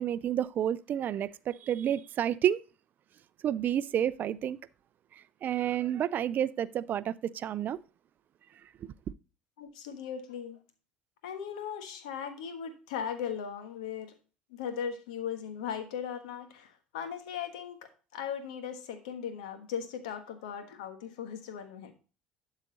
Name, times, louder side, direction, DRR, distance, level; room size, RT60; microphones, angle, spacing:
voice 1, 0.0-2.6 3.4-4.6 5.4-7.8, right 10 dB, 50° right, 0.4 m, -30 dB
voice 2, 9.6-10.6 11.2-14.1 14.5-21.9, left 8 dB, 80° left, 1.3 m, -38 dB
11.5 x 4.0 x 3.8 m
hypercardioid pair, 70°, 4 cm